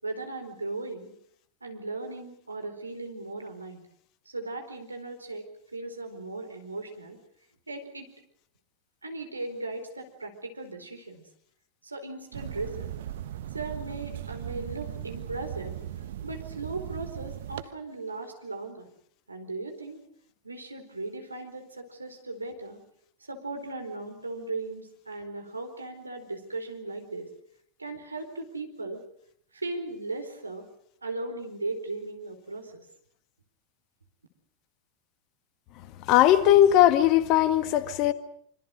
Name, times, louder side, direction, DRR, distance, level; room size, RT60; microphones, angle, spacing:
voice 1, 0.0-1.1 1.6-3.9 4.3-7.2 7.7-8.1 9.0-11.3 11.8-12.9 13.5-18.9 19.3-20.0 20.4-22.8 23.2-27.3 27.8-29.0 29.5-30.7 31.0-32.9, right 2 dB, 85° right, 4.4 m, -37 dB
sound 1, 12.3-17.6, right 12 dB, 60° right, 1.4 m, -38 dB
voice 2, 36.1-38.1, left 12 dB, 40° left, 1.7 m, -19 dB
25.5 x 25.5 x 6.5 m
figure-of-eight pair, 90°, 0 cm